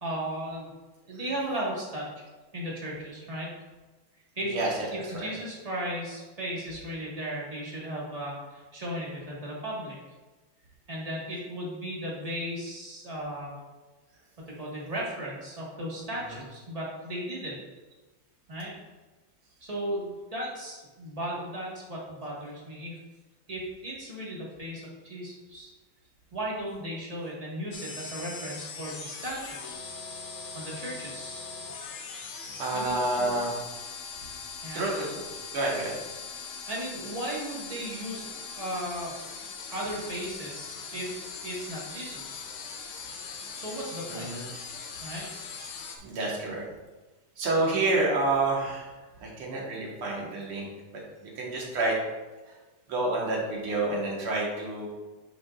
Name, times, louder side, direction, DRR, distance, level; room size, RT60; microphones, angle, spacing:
voice 1, 0.0-0.7 1.0-2.1 2.5-3.5 4.3-4.6 4.9-10.0 10.9-13.6 14.4-17.6 18.5-18.7 19.6-23.0 23.5-25.7 26.3-29.9 30.5-31.5 32.7-33.3 34.6-34.8 36.7-39.1 39.7-42.4 43.5-44.3 45.0-45.3, right 1 dB, 20° right, -5 dB, 1.5 m, -36 dB
voice 2, 4.5-4.9 5.1-5.3 16.3-16.4 32.6-33.5 34.7-35.2 35.5-36.0 44.1-44.4 46.0-46.6 47.4-48.9 49.2-50.7 51.2-52.0 52.9-54.9, right 2 dB, 80° right, -3 dB, 2.5 m, -28 dB
sound 1, 27.7-46.0, left 5 dB, 75° left, 1.8 m, -40 dB
9.2 x 5.9 x 2.5 m, 1.2 s
omnidirectional pair, 2.4 m